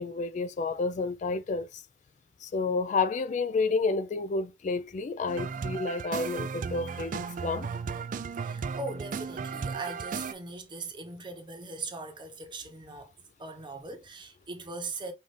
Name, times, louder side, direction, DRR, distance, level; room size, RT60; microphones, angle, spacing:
voice 1, 0.0-1.7 2.4-7.7, left 4 dB, 45° left, 0.3 m, -30 dB
sound 1, 5.3-10.3, right 5 dB, 50° right, 0.3 m, -35 dB
voice 2, 8.4-13.1 13.4-15.1, right 3 dB, 30° right, 0.9 m, -40 dB
5.5 x 2.5 x 3.3 m
head